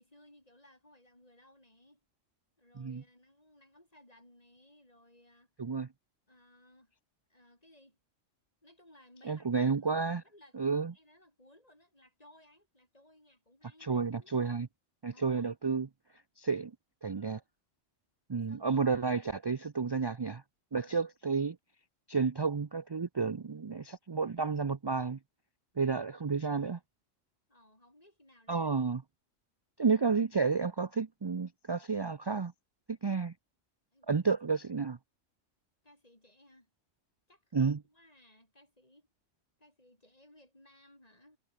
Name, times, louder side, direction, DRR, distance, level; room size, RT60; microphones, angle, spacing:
voice 1, 0.0-2.0 2.6-5.7 6.3-6.9 7.3-8.0 8.6-10.6 10.9-14.3 15.1-15.5 18.5-18.7 20.7-20.9 26.3-26.4 27.5-28.7 33.9-34.1 35.8-36.7 37.3-39.1 39.6-41.4, left 1 dB, 30° left, 6.4 m, -61 dB
voice 2, 9.3-10.2 10.5-10.9 13.8-14.7 15.0-15.9 16.4-16.7 17.0-17.4 18.3-20.4 20.7-21.6 22.1-25.2 25.8-26.8 28.5-29.0 29.8-32.5 32.9-33.3 34.1-35.0 37.5-37.8, right 5 dB, 40° right, 0.3 m, -31 dB
omnidirectional pair, 1.3 m